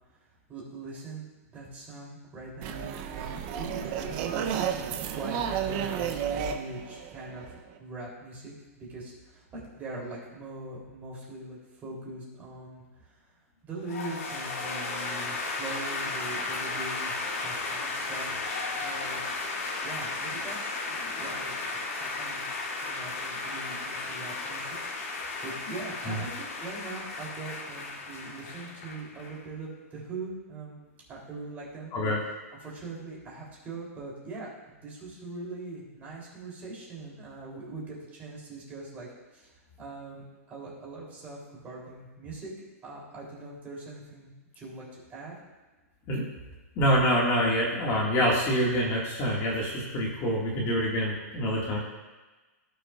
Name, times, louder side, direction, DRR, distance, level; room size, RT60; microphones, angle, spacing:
voice 1, 0.5-1.3 1.5-8.5 8.9-13.1 13.6-18.4 18.8-19.2 19.8-22.5 22.8-24.7 25.1-30.8 31.1-31.9 32.6-39.5 39.8-42.5 42.8-45.3, right 3 dB, 20° right, -5 dB, 3.3 m, -42 dB
sound 1, 2.6-7.8, right 8 dB, 35° right, 0.7 m, -32 dB
sound 2, 13.9-29.4, left 3 dB, 75° left, 2.5 m, -34 dB
voice 2, 46.8-51.8, equal, 30° left, -4 dB, 2.0 m, -26 dB
17.0 x 6.8 x 2.5 m, 1.2 s
hypercardioid pair, 150°, 8 cm